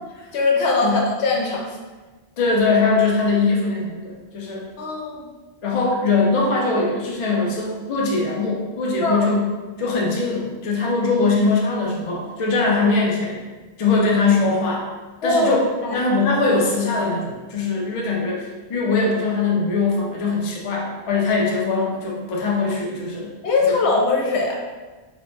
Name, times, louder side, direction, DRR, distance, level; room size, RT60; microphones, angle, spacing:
voice 1, 0.3-1.8 4.8-5.2 9.0-9.3 15.2-15.5 15.8-16.0 23.4-24.5, left 3 dB, 85° left, -1 dB, 0.9 m, -21 dB
voice 2, 2.4-4.6 5.6-9.5 9.8-13.4 13.8-14.8 15.2-15.6 15.9-23.3 23.6-23.7, left 3 dB, 45° left, -2 dB, 0.4 m, -21 dB
3.0 x 2.0 x 3.2 m, 1.3 s
omnidirectional pair, 1.1 m